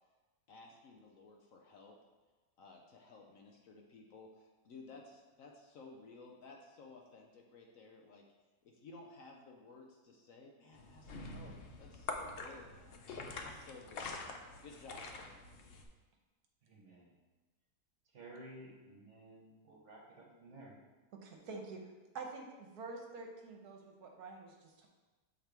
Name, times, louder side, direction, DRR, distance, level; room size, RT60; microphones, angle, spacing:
voice 1, 0.5-2.0 2.6-8.3 8.6-11.5 11.8-14.1 14.6-15.4, left 3 dB, 65° left, 1 dB, 0.9 m, -55 dB
sound 1, 10.7-15.8, left 3 dB, 85° left, 0.5 m, -46 dB
voice 2, 16.7-17.1 18.1-20.7, right 1 dB, 50° right, -2 dB, 1.4 m, -54 dB
voice 3, 21.1-21.8 22.1-24.9, right 3 dB, 75° right, 2 dB, 1.3 m, -47 dB
7.2 x 4.4 x 3.4 m, 1.2 s
omnidirectional pair, 1.8 m